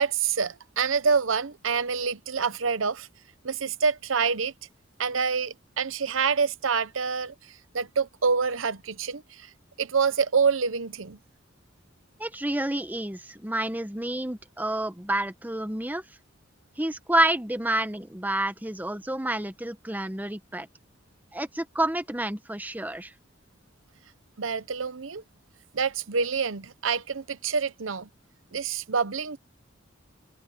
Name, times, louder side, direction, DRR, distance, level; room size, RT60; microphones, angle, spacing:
voice 1, 0.0-3.1 3.4-4.5 5.0-9.5 9.8-11.2 24.4-25.2 25.7-28.1 28.5-29.4, right 5 dB, 85° right, 0.9 m, -27 dB
voice 2, 12.2-16.0 16.8-20.7 21.3-23.1, right 1 dB, 10° right, 1.1 m, -29 dB
head